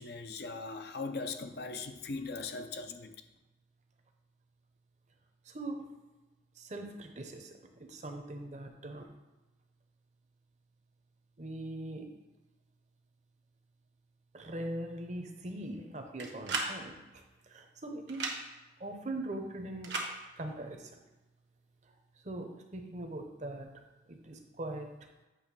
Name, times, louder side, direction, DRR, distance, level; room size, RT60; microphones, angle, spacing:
voice 1, 0.0-3.1, left 3 dB, 55° left, 0.6 m, -39 dB
voice 2, 5.5-5.8 6.6-7.5 7.9-9.1 11.4-12.0 14.3-17.0 17.5-18.3 18.8-19.9 20.4-21.0 22.2-23.7 24.1-24.9, right 1 dB, 40° right, 0.8 m, -41 dB
sound 1, 16.2-16.7 18.1-18.4 19.8-20.1, right 3 dB, 75° right, 1.2 m, -34 dB
8.3 x 3.2 x 6.0 m
head